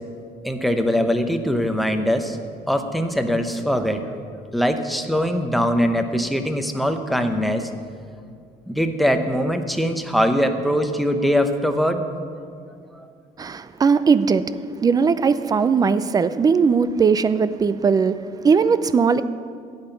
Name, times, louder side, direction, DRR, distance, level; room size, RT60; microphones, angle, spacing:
voice 1, 0.4-4.2 4.5-7.7 8.7-12.0 12.9-13.1, equal, ahead, 6 dB, 0.8 m, -22 dB
voice 2, 13.4-14.5 14.8-19.2, right 5 dB, 20° right, 14 dB, 0.4 m, -19 dB
13.0 x 5.8 x 9.1 m, 2.3 s
cardioid pair, 140°, 17 cm